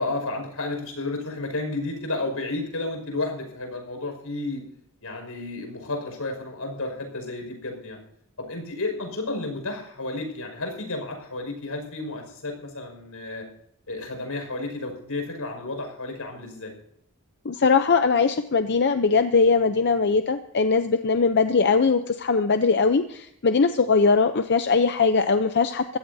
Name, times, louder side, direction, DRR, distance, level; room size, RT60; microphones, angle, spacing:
voice 1, 0.0-4.6 5.0-8.0 8.4-13.4 13.9-16.7 21.1-21.2, left 2 dB, 80° left, 3 dB, 5.7 m, -32 dB
voice 2, 17.4-26.0, left 4 dB, 50° left, 8 dB, 0.7 m, -21 dB
23.5 x 16.0 x 2.8 m, 0.73 s
head